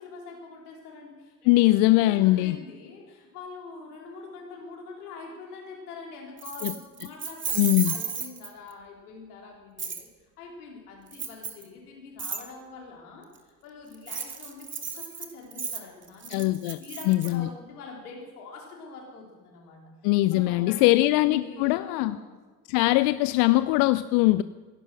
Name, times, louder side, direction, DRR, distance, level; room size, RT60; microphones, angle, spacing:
voice 1, 0.0-10.0 10.4-19.9 20.3-22.4, left 4 dB, 70° left, -1 dB, 4.0 m, -44 dB
voice 2, 1.5-2.6 6.6-6.7 7.6-7.9 16.3-16.8 17.1-17.5 20.0-22.2 22.7-24.4, left 18 dB, 50° left, 15 dB, 0.6 m, -21 dB
Keys jangling, 6.4-8.7 9.8-10.0 11.1-11.6 12.2-12.4 13.9-17.3, right 6 dB, 25° right, 1.8 m, -34 dB
17.0 x 11.0 x 6.2 m, 1.4 s
figure-of-eight pair, 60°, 46 cm